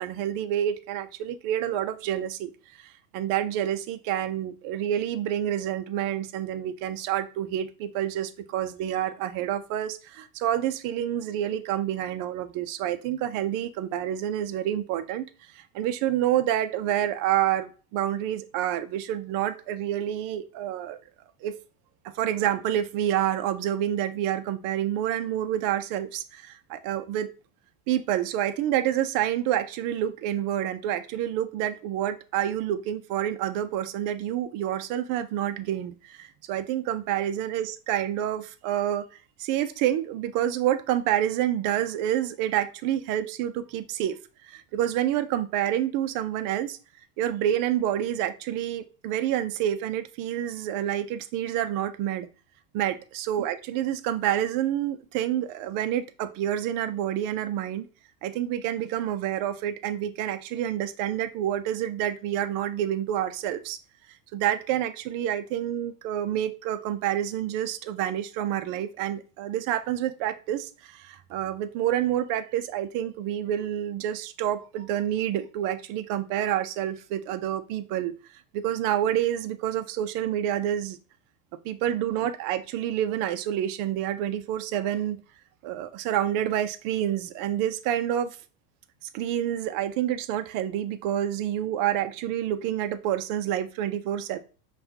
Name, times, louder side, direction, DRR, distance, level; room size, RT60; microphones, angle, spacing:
voice 1, 0.0-2.5 2.8-15.3 15.5-21.0 21.4-21.6 22.0-27.3 27.9-39.1 39.4-44.2 44.5-46.8 47.2-52.3 52.7-57.9 58.2-63.8 64.3-78.2 78.5-81.0 81.6-85.2 85.6-88.3 89.1-94.4, right 11 dB, 45° right, 0.5 m, -28 dB
5.5 x 2.4 x 2.8 m
supercardioid pair, 120°, 49 cm